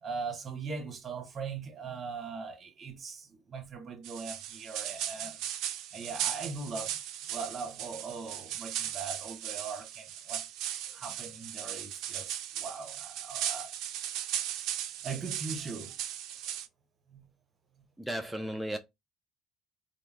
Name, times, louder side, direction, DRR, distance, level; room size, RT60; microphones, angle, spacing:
voice 1, 0.0-5.4 5.9-7.0 7.3-10.4 10.9-13.7 15.0-16.0 17.1-17.3 17.8-17.9, right 4 dB, 40° right, 0.7 m, -40 dB
sound 1, 4.0-16.7, right 11 dB, 75° right, 0.3 m, -37 dB
voice 2, 18.0-18.8, right 1 dB, ahead, 0.4 m, -34 dB
2.3 x 2.0 x 3.1 m
supercardioid pair, 85°, 0 cm